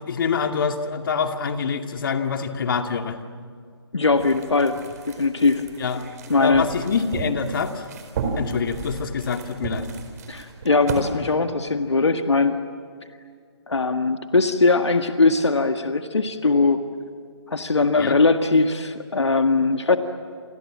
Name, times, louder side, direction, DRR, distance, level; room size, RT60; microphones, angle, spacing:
voice 1, 0.0-3.2 5.8-6.0 6.4-7.9 8.4-9.9 18.0-18.2, left 6 dB, 50° left, 6 dB, 2.3 m, -25 dB
voice 2, 3.9-4.8 5.1-5.6 6.3-6.6 10.3-12.6 13.7-16.8 17.5-20.0, left 3 dB, 80° left, 7 dB, 1.8 m, -20 dB
sound 1, 4.1-11.0, right 4 dB, 35° right, 4.7 m, -34 dB
29.0 x 27.5 x 7.5 m, 2.1 s
figure-of-eight pair, 145°, 14 cm